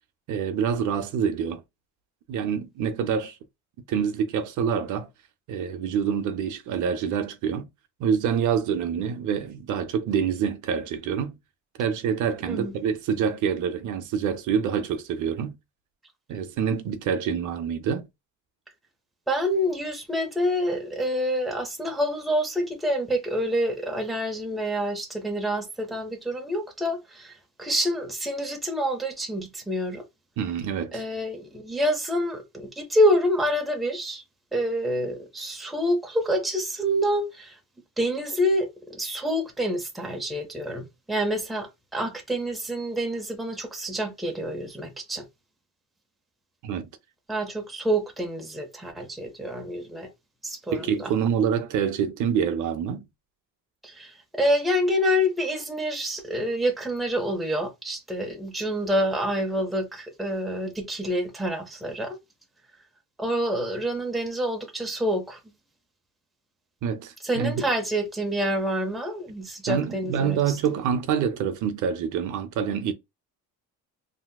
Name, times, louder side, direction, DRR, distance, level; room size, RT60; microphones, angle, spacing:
voice 1, 0.3-1.6 2.3-3.4 3.9-5.1 5.5-7.7 8.0-11.4 11.8-15.6 16.3-18.1 30.4-31.0 46.6-46.9 50.7-53.1 66.8-67.6 69.7-72.9, right 7 dB, 60° right, 0.6 m, -26 dB
voice 2, 19.3-30.0 30.9-34.2 34.5-37.6 38.0-45.3 47.3-50.1 50.4-51.1 53.8-62.2 63.2-65.4 67.2-70.6, equal, ahead, 0.6 m, -27 dB
3.4 x 2.7 x 2.2 m
cardioid pair, 150°, 34 cm